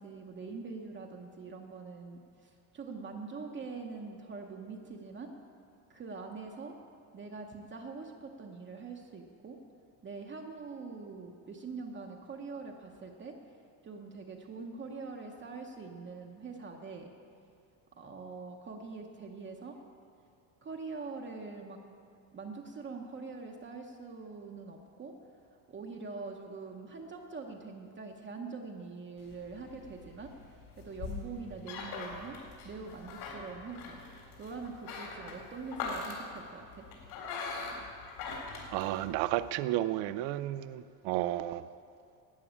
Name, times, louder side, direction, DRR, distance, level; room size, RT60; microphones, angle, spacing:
voice 1, 0.0-5.3 5.9-6.8 7.1-9.6 10.0-13.4 13.8-17.1 18.0-19.8 20.6-21.8 22.3-25.1 25.7-30.3 30.8-32.4 32.6-34.0 34.4-36.8, right 4 dB, 25° right, 0.9 m, -44 dB
sound 1, 29.2-39.5, left 4 dB, 70° left, 3.8 m, -42 dB
voice 2, 38.7-41.6, right 14 dB, 65° right, 0.5 m, -32 dB
12.5 x 8.4 x 8.6 m
cardioid pair, 140°, 48 cm